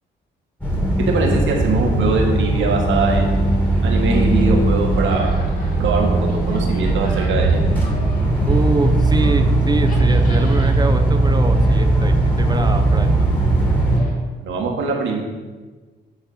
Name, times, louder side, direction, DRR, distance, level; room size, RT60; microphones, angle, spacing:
sound 1, 0.6-14.0, right 2 dB, 10° left, 1.9 m, -18 dB
voice 1, 1.1-3.5 3.8-5.4 5.8-7.6 14.4-15.2, right 3 dB, 75° right, 0 dB, 1.6 m, -22 dB
sound 2, 2.9-14.1, equal, 45° left, 2.2 m, -38 dB
voice 2, 8.5-13.1, right 3 dB, 20° right, 7 dB, 0.7 m, -25 dB
8.7 x 3.6 x 5.5 m, 1.3 s
cardioid pair, 90°, 20 cm